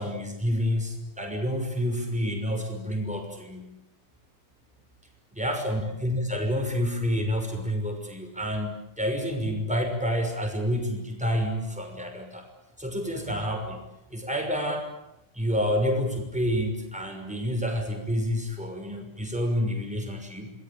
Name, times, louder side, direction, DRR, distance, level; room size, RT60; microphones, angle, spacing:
voice 1, 0.0-3.7 5.3-12.5 12.8-14.9 15.3-20.5, equal, 5° right, 3 dB, 5.9 m, -29 dB
29.0 x 20.5 x 8.8 m, 0.89 s
omnidirectional pair, 1.9 m